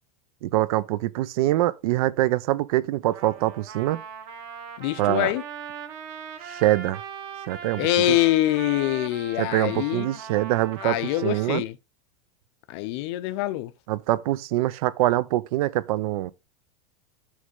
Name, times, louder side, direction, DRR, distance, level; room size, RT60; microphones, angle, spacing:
voice 1, 0.4-4.0 5.0-5.3 6.4-7.0 7.5-7.8 8.1-8.2 9.4-11.6 13.9-16.3, right 15 dB, 65° right, 0.5 m, -24 dB
Trumpet, 3.1-11.5, right 7 dB, 45° right, 1.2 m, -40 dB
voice 2, 4.8-5.4 7.8-10.1 10.8-11.8 12.7-13.7, left 16 dB, 45° left, 0.5 m, -24 dB
6.4 x 3.3 x 5.3 m
supercardioid pair, 175°, 20 cm